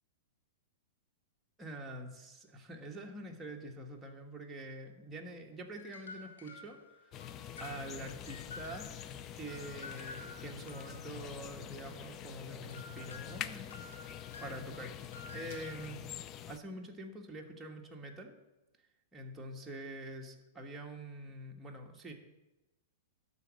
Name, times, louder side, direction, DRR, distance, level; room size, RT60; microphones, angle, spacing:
voice 1, 1.6-7.2 7.6-8.9 9.3-13.8 14.1-14.9 15.3-16.0 16.5-18.3 19.1-22.1, right 1 dB, 15° right, 1 dB, 1.4 m, -46 dB
sound 1, 5.7-9.2 9.5-11.6 12.7-15.9, left 4 dB, 85° left, 3.0 m, -51 dB
sound 2, 7.1-16.6, left 10 dB, 35° left, 0.5 m, -46 dB
12.0 x 4.1 x 7.6 m, 1.0 s
hypercardioid pair, 120°, 0 cm